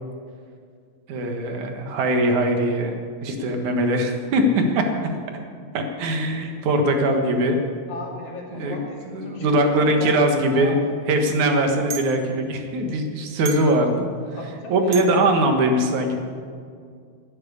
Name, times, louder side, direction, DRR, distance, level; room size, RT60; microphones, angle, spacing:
voice 1, 1.1-4.8 5.7-7.6 8.5-8.8 9.0-10.8 11.1-14.1 14.7-16.2, right 1 dB, 75° right, 4 dB, 2.9 m, -21 dB
voice 2, 7.9-10.9 14.4-14.9, left 2 dB, 75° left, -1 dB, 3.8 m, -36 dB
sound 1, 11.9-12.1 13.4-13.8 14.9-15.2, right 6 dB, 55° right, 1.1 m, -33 dB
11.5 x 11.0 x 9.9 m, 2.2 s
omnidirectional pair, 3.5 m